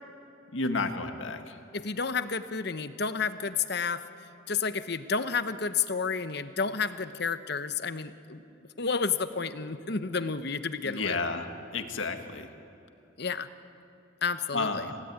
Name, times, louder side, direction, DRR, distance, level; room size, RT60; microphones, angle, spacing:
voice 1, 0.5-1.4 10.9-11.5 11.7-12.5 14.5-15.0, left 3 dB, 70° left, 6 dB, 1.9 m, -31 dB
voice 2, 1.7-4.0 4.5-8.4 8.8-11.2 13.2-13.5 14.2-14.9, left 5 dB, 55° left, 11 dB, 1.0 m, -31 dB
27.5 x 17.5 x 9.6 m, 2.9 s
head